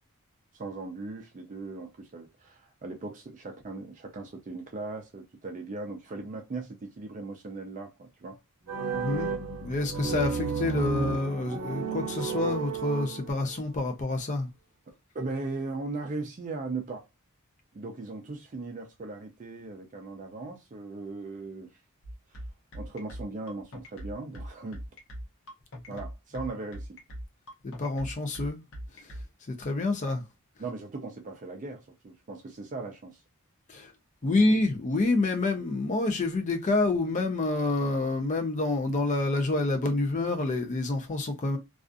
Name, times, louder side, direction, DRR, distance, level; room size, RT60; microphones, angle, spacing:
voice 1, 0.5-8.4 14.9-17.1 17.7-21.8 22.3-22.4 22.7-24.8 25.9-27.0 30.6-33.2 34.4-34.5, right 3 dB, 35° right, 0.4 m, -38 dB
sound 1, 8.7-13.6, right 5 dB, 90° right, 0.6 m, -32 dB
voice 2, 8.9-14.5 27.6-28.6 28.9-29.1 29.6-30.2 33.7-33.9 34.2-41.6, left 2 dB, 35° left, 0.4 m, -28 dB
sound 2, 22.0-29.2, equal, 55° left, 0.8 m, -40 dB
2.4 x 2.3 x 2.4 m
head